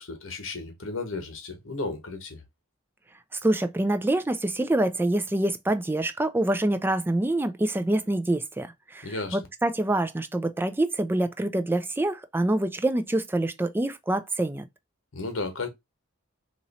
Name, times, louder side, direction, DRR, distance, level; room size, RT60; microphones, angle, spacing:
voice 1, 0.0-2.4 9.0-9.4 15.1-15.7, left 3 dB, 75° left, 1.1 m, -34 dB
voice 2, 3.3-14.7, right 1 dB, 10° right, 0.3 m, -26 dB
3.0 x 2.6 x 4.1 m
head